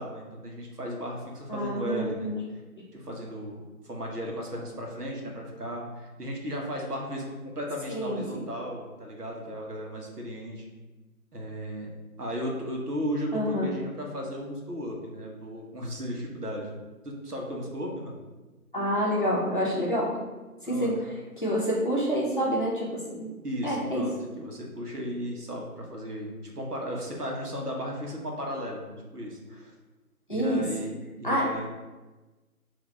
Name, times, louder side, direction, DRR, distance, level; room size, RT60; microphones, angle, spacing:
voice 1, 0.0-2.3 2.9-10.6 11.3-11.9 12.2-16.7 17.0-18.1 20.6-20.9 23.4-29.7 30.3-31.7, equal, 80° right, -1 dB, 1.2 m, -35 dB
voice 2, 1.5-2.4 7.9-8.2 13.3-13.7 18.7-20.1 20.6-23.3 23.6-24.0 30.3-30.6 31.2-31.5, equal, 35° left, -6 dB, 0.9 m, -27 dB
3.8 x 2.8 x 4.1 m, 1.2 s
figure-of-eight pair, 160°, 46 cm